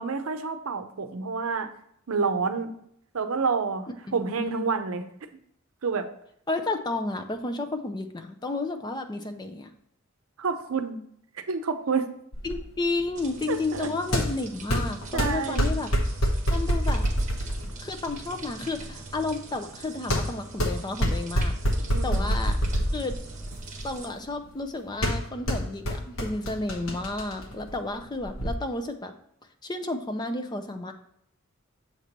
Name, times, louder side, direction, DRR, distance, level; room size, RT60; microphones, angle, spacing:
voice 1, 0.0-1.7 2.1-2.7 3.1-5.0 5.8-6.1 10.4-11.0 11.5-12.1 13.5-13.9 15.1-15.7 21.8-22.3, right 5 dB, 75° right, 8 dB, 0.6 m, -28 dB
voice 2, 4.2-4.6 6.5-9.7 12.4-15.9 16.5-17.1 17.8-21.5 22.0-22.6 22.9-23.2 23.8-29.1 29.6-30.9, left 2 dB, 20° left, 7 dB, 0.5 m, -32 dB
sound 1, 12.3-28.5, equal, 70° left, 1.1 m, -28 dB
sound 2, 13.1-24.1, right 4 dB, 35° right, 1.0 m, -43 dB
7.2 x 2.9 x 5.1 m, 0.72 s
head